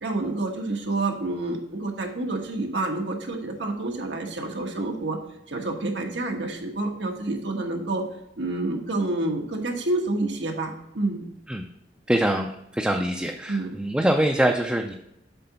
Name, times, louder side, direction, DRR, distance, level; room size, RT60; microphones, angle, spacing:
voice 1, 0.0-5.2 5.5-8.0 8.4-11.2 13.5-13.7, right 2 dB, 90° right, 2 dB, 1.3 m, -28 dB
voice 2, 12.1-14.9, right 1 dB, 5° right, 2 dB, 0.4 m, -24 dB
7.7 x 3.9 x 5.6 m, 0.80 s
head